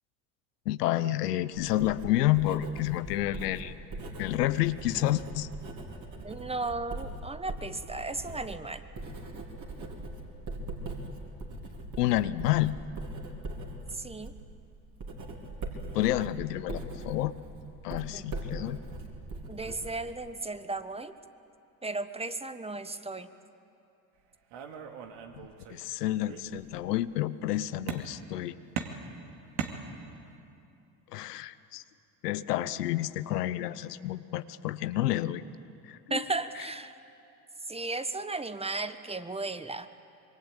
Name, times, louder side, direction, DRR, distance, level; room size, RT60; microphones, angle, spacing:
voice 1, 0.7-3.8 4.2-5.5 12.0-12.8 15.9-17.3 17.8-18.8 25.7-28.6 31.1-31.8 32.2-35.4 35.9-36.3, left 14 dB, 85° left, 14 dB, 0.9 m, -29 dB
Writing, 1.5-20.4, right 2 dB, 40° right, 4.3 m, -41 dB
voice 2, 6.2-8.8 14.0-14.3 18.1-18.3 19.5-21.1 21.8-23.3 36.1-37.0 37.7-39.9, right 3 dB, 15° right, 11 dB, 1.3 m, -35 dB
sound 1, 24.5-25.9 26.2-26.9 27.9-28.4 28.8-30.4, right 7 dB, 65° right, 2.6 m, -39 dB
25.5 x 22.5 x 8.9 m, 2.7 s
hypercardioid pair, 75°, 46 cm